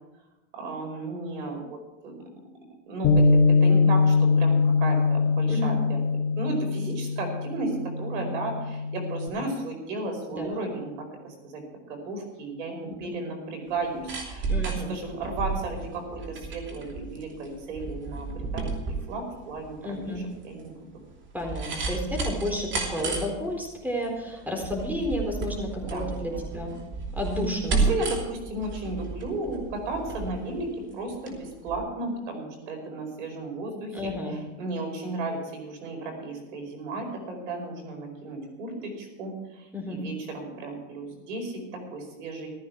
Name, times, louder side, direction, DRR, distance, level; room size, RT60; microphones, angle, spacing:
voice 1, 0.5-1.8 2.0-2.2 2.9-6.0 6.3-10.9 11.2-11.6 11.9-18.7 19.1-20.8 25.8-26.7 27.7-42.5, right 2 dB, 85° right, 3 dB, 5.1 m, -34 dB
Bass guitar, 3.0-9.3, left 4 dB, 40° left, 1.9 m, -22 dB
voice 2, 5.5-5.8 10.3-10.6 12.9-13.1 14.5-14.9 19.8-20.2 21.3-26.7 27.1-27.8 33.9-34.3 39.7-40.0, equal, 5° right, 2 dB, 4.2 m, -31 dB
sound 1, 13.7-31.4 31.7-31.8, right 4 dB, 30° right, 2.9 m, -32 dB
15.0 x 13.5 x 4.7 m, 1.0 s
supercardioid pair, 120°, 36 cm